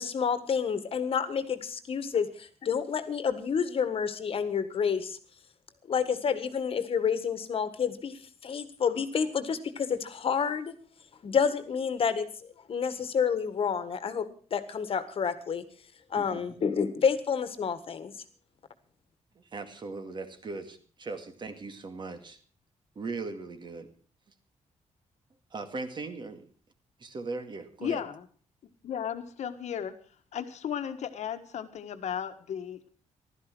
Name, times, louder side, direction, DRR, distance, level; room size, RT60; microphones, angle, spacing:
voice 1, 0.0-5.2 5.9-10.7 11.2-12.3 12.7-15.6 16.1-18.1, left 6 dB, 50° left, 12 dB, 1.7 m, -29 dB
voice 2, 16.2-16.6 19.4-22.4 23.0-23.9 25.5-26.4 27.0-28.0, right 3 dB, 40° right, 7 dB, 2.2 m, -39 dB
voice 3, 27.8-28.3 28.8-29.9 30.3-32.9, left 8 dB, 70° left, 9 dB, 1.5 m, -35 dB
15.5 x 12.5 x 6.2 m, 0.42 s
cardioid pair, 125°, 12 cm